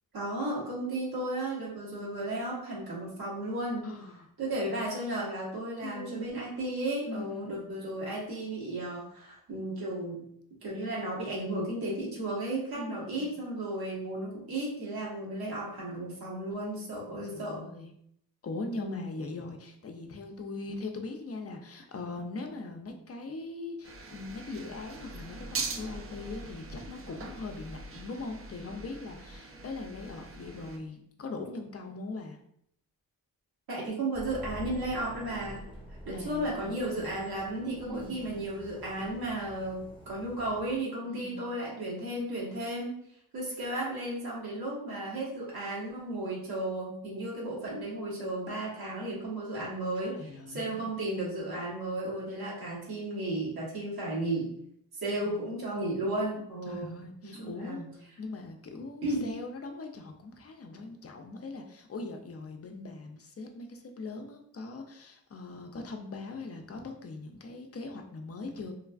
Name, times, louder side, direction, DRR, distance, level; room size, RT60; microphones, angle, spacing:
voice 1, 0.1-3.9 4.4-10.2 10.6-17.6 18.8-19.0 33.7-35.6 36.0-42.9 43.3-54.5 55.0-56.9 57.2-57.9 59.0-59.3, right 1 dB, 80° right, -5 dB, 1.3 m, -34 dB
voice 2, 3.8-4.3 5.8-6.4 7.1-7.8 12.7-13.3 17.2-17.9 18.4-32.4 36.1-37.2 37.8-38.3 41.1-41.5 49.9-50.8 55.2-55.6 56.6-68.7, left 3 dB, 40° left, 4 dB, 0.5 m, -41 dB
sound 1, 23.8-30.8, right 3 dB, 40° right, 0.4 m, -42 dB
sound 2, 34.1-40.8, equal, 15° left, 0.8 m, -47 dB
3.1 x 2.3 x 2.3 m, 0.71 s
cardioid pair, 65°, 37 cm